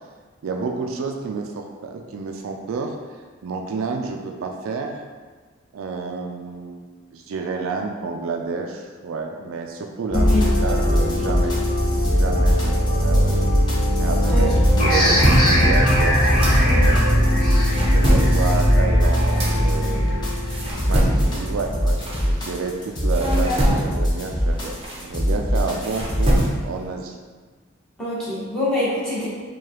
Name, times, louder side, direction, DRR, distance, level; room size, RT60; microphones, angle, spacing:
voice 1, 0.4-3.0 3.4-4.9 5.7-11.6 12.1-13.4 14.0-14.5 14.8-17.3 17.9-20.4 20.8-27.1, right 4 dB, 75° right, 3 dB, 0.4 m, -29 dB
sound 1, 10.1-26.5, equal, 20° left, 0.7 m, -20 dB
voice 2, 10.1-10.5 11.3-11.4 14.3-14.4 28.0-29.3, left 2 dB, 5° left, -10 dB, 1.1 m, -25 dB
sound 2, 14.6-17.1 17.4-22.7 23.1-26.8, equal, 25° right, 0.7 m, -25 dB
sound 3, 14.8-20.1, equal, 40° left, 1.2 m, -22 dB
4.7 x 2.3 x 2.9 m, 1.5 s
head